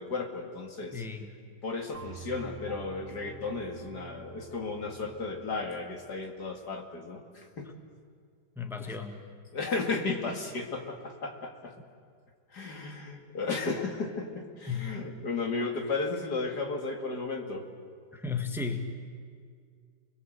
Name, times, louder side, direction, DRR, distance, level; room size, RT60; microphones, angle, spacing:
voice 1, 0.0-1.0 1.6-7.7 9.5-11.7 12.5-17.6, left 3 dB, 70° left, 3 dB, 2.8 m, -34 dB
voice 2, 0.9-1.3 7.6-7.7 8.6-9.2 14.7-15.0 18.1-18.9, left 5 dB, ahead, 5 dB, 1.6 m, -34 dB
sound 1, 1.9-6.1, right 5 dB, 80° right, 2.8 m, -47 dB
29.0 x 21.0 x 8.0 m, 2.1 s
omnidirectional pair, 1.8 m